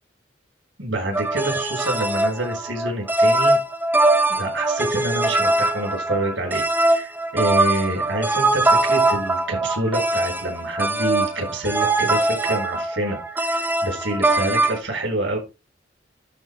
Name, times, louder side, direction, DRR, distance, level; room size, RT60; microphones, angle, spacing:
voice 1, 0.8-3.6 4.3-15.4, right 1 dB, 80° right, 1 dB, 6.6 m, -27 dB
sound 1, 1.1-14.8, right 2 dB, 10° right, 0.8 m, -21 dB
12.5 x 5.0 x 4.3 m, 0.28 s
head